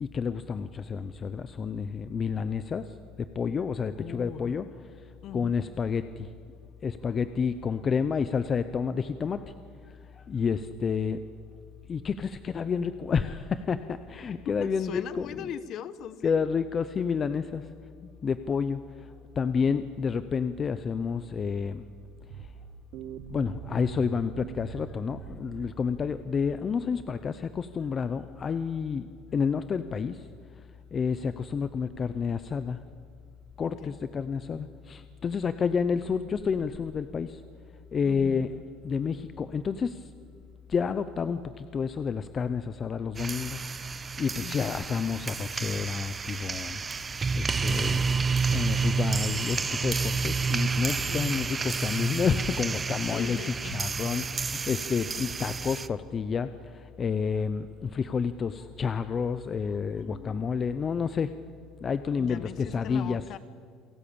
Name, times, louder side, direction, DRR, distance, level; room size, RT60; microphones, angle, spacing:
voice 1, 0.0-2.9 3.2-4.7 5.3-6.3 6.8-9.4 10.2-11.2 11.9-15.3 16.2-17.7 18.2-18.8 19.4-21.9 23.3-29.1 29.3-30.3 30.9-32.8 33.6-37.4 37.9-38.5 38.8-40.0 40.7-43.7 44.2-46.8 47.3-48.1 48.5-61.3 61.8-63.2, left 6 dB, 25° left, 12 dB, 0.7 m, -29 dB
voice 2, 4.0-4.6 5.2-5.7 14.5-16.5 33.6-34.0 38.0-38.5 44.4-44.8 51.1-51.4 53.1-53.8 59.9-60.6 62.1-63.4, left 9 dB, 40° left, 15 dB, 1.0 m, -40 dB
sound 1, 22.2-26.9, right 12 dB, 60° right, 0.8 m, -44 dB
sound 2, 43.2-55.9, right 5 dB, 15° right, 0.6 m, -30 dB
28.5 x 17.5 x 8.7 m, 2.1 s
cardioid pair, 165°, 0 cm